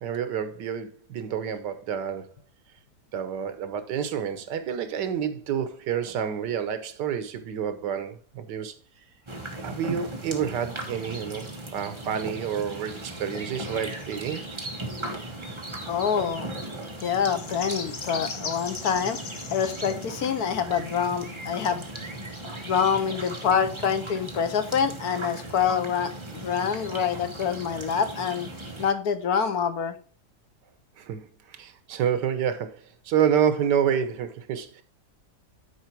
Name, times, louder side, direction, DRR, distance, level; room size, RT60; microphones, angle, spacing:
voice 1, 0.0-2.3 3.1-8.7 9.6-14.4 31.0-34.8, right 8 dB, 85° right, 1.5 m, -28 dB
sound 1, 9.3-28.9, right 1 dB, 20° right, 1.3 m, -37 dB
voice 2, 15.9-16.6 17.0-19.2 19.5-21.8 22.6-28.5 28.8-29.9, left 7 dB, 65° left, 1.4 m, -26 dB
sound 2, 17.4-23.1, left 5 dB, 90° left, 1.9 m, -41 dB
9.6 x 4.6 x 4.5 m
omnidirectional pair, 1.8 m